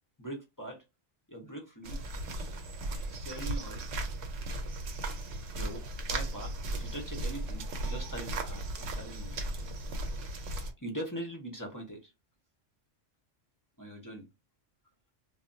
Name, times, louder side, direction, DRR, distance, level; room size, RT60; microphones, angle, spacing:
voice 1, 0.2-0.8 1.3-2.0 3.1-3.8 5.6-9.4 10.8-12.1 13.8-14.2, right 1 dB, 25° left, 0 dB, 0.4 m, -42 dB
sound 1, 1.8-10.7, right 2 dB, 80° right, 1.0 m, -36 dB
2.2 x 2.0 x 3.8 m, 0.24 s
omnidirectional pair, 1.3 m